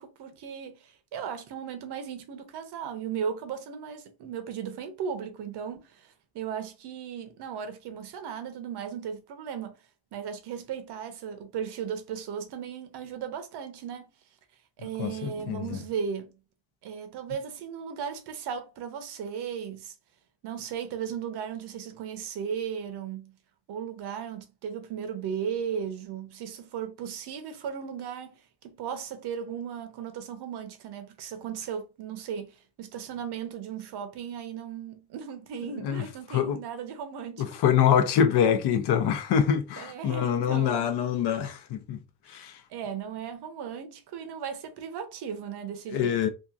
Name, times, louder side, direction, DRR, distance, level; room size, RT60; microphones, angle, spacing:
voice 1, 0.0-9.7 10.1-14.1 14.8-16.3 16.8-19.9 20.4-23.4 23.7-37.4 39.8-40.9 42.7-46.2, right 7 dB, 75° right, 0.8 m, -36 dB
voice 2, 15.0-15.8 35.8-36.0 36.3-36.6 37.4-42.0 42.3-42.6 45.9-46.3, left 8 dB, 75° left, 0.7 m, -25 dB
2.9 x 2.4 x 2.4 m
cardioid pair, 160°, 40 cm